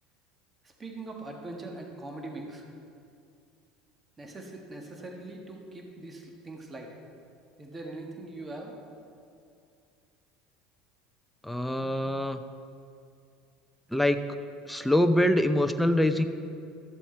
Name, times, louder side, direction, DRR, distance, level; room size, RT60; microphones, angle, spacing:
voice 1, 0.6-2.7 4.2-6.9 7.6-8.8, right 2 dB, 25° right, 1 dB, 1.6 m, -41 dB
voice 2, 11.4-12.4 13.9-14.2 14.7-16.3, left 1 dB, 5° left, 8 dB, 0.6 m, -24 dB
13.0 x 7.1 x 4.5 m, 2.4 s
hypercardioid pair, 75°, 0 cm